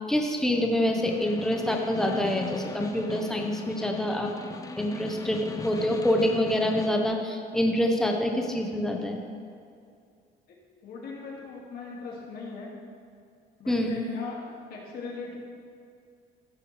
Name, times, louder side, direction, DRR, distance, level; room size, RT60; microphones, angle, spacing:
voice 1, 0.0-4.3 4.8-9.2 13.7-14.0, left 1 dB, 5° left, 2 dB, 1.0 m, -26 dB
Snare drum, 0.9-7.0, left 3 dB, 20° left, 0.7 m, -39 dB
voice 2, 10.8-12.7 13.6-15.4, left 4 dB, 65° left, -2 dB, 2.2 m, -39 dB
15.0 x 6.7 x 3.3 m, 2.4 s
cardioid pair, 110°, 17 cm